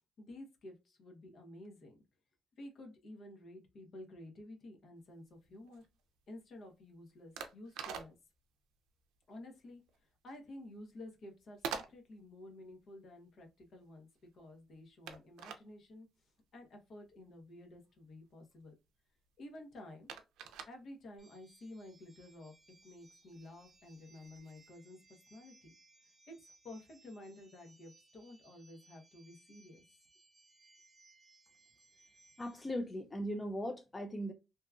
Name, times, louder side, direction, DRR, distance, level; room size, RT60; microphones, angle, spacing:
voice 1, 0.2-1.9 2.6-5.9 6.3-8.2 9.3-9.8 10.2-18.7 19.4-20.1 20.7-22.5 22.8-25.7 26.0-29.8, left 1 dB, 60° left, 0.9 m, -52 dB
sound 1, 5.0-24.7, right 7 dB, 90° right, 0.4 m, -50 dB
sound 2, 21.2-32.7, right 3 dB, 15° right, 0.7 m, -66 dB
voice 2, 32.4-34.3, equal, 20° left, 0.4 m, -38 dB
2.8 x 2.3 x 2.3 m
cardioid pair, 90°, 0 cm